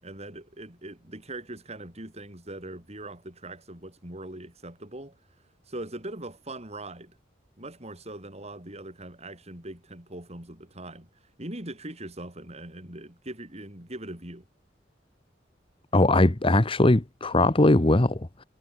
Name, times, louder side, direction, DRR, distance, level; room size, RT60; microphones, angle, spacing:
voice 1, 0.0-5.2 5.7-7.2 7.6-11.1 11.4-14.4, right 1 dB, 35° right, 6.4 m, -41 dB
voice 2, 15.9-18.4, left 2 dB, 30° left, 1.1 m, -20 dB
head